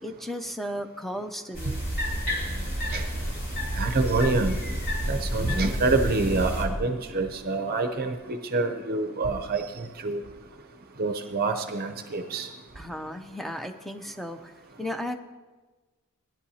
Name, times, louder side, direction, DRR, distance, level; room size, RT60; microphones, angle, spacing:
voice 1, 0.0-1.8 5.4-5.7 12.8-14.5 14.8-15.2, equal, ahead, 6 dB, 0.6 m, -35 dB
sound 1, 1.5-6.6, equal, 45° left, 2.9 m, -30 dB
voice 2, 3.7-4.6 5.1-10.2 11.0-12.5, right 3 dB, 45° right, 6 dB, 0.6 m, -27 dB
19.0 x 10.5 x 2.8 m, 1.3 s
head